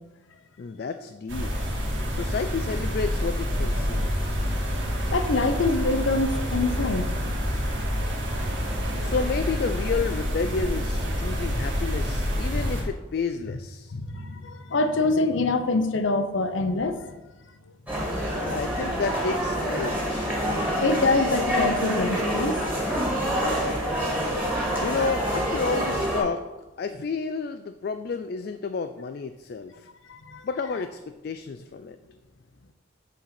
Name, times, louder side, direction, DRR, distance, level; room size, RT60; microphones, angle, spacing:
voice 1, 0.6-1.5 2.1-4.1 9.0-14.0 18.4-20.4 24.8-26.4 26.8-29.9 30.4-32.0, left 4 dB, 50° left, 9 dB, 0.3 m, -31 dB
sound 1, 1.3-12.8, equal, 70° right, 2.2 m, -27 dB
voice 2, 5.1-7.4 9.0-9.1 12.5-12.6 13.9-17.0 18.2-18.3 20.8-22.6 24.5-24.7 30.1-30.4, left 3 dB, 70° left, 8 dB, 0.7 m, -25 dB
sound 2, 17.9-26.2, equal, 10° right, 2.0 m, -26 dB
8.4 x 4.1 x 5.9 m, 1.1 s
head